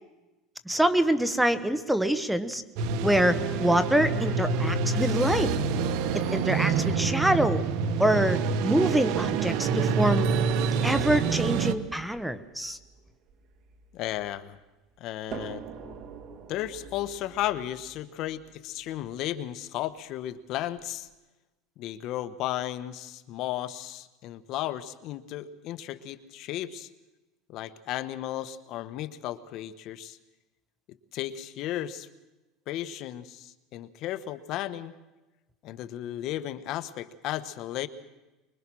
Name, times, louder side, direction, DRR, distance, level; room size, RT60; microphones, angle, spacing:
voice 1, 0.7-2.6 3.0-5.5 6.3-7.6 8.0-10.3 10.8-12.8, right 1 dB, 5° right, 12 dB, 1.2 m, -25 dB
sound 1, 2.8-11.7, right 5 dB, 65° right, 1.4 m, -27 dB
sound 2, 9.1-14.4 15.3-19.3 20.2-20.3 20.8-20.9, right 7 dB, 45° right, 2.2 m, -42 dB
voice 2, 13.9-14.6 15.0-15.6 16.5-21.1 21.8-26.9 27.5-30.2 31.1-32.1 32.7-34.9 35.6-37.9, left 13 dB, 55° left, 12 dB, 1.3 m, -34 dB
24.5 x 22.5 x 6.3 m, 1.1 s
supercardioid pair, 135°, 0 cm